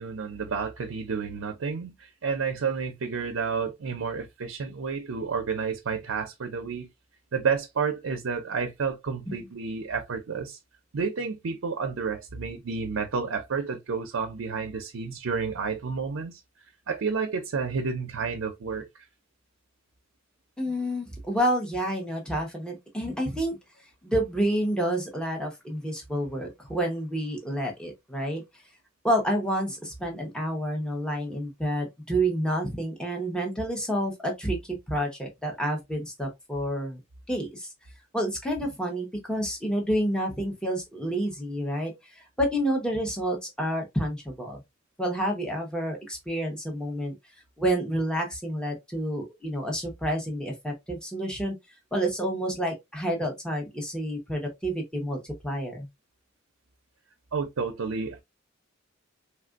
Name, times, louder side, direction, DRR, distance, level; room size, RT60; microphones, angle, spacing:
voice 1, 0.0-6.9 7.3-10.6 10.9-16.4 16.9-19.0 57.3-58.2, right 5 dB, 75° right, 0.5 m, -30 dB
voice 2, 20.6-23.6 24.0-28.4 29.0-34.6 34.9-37.0 37.3-37.7 38.1-44.6 45.0-47.1 47.6-51.6 51.9-55.9, right 1 dB, 5° left, 0.9 m, -29 dB
3.4 x 2.5 x 2.3 m
head